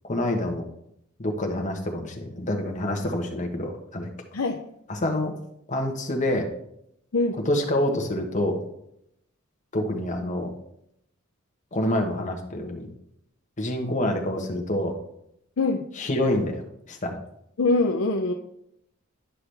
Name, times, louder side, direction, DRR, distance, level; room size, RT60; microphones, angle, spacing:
voice 1, 0.1-0.6 1.2-4.1 4.9-5.3 5.7-6.5 7.5-8.6 9.7-10.5 11.7-12.9 13.6-14.9 16.0-16.6 16.9-17.2, left 1 dB, 35° left, 2 dB, 1.2 m, -27 dB
voice 2, 17.6-18.3, left 3 dB, 70° left, 3 dB, 0.6 m, -23 dB
10.0 x 5.8 x 3.4 m, 0.76 s
head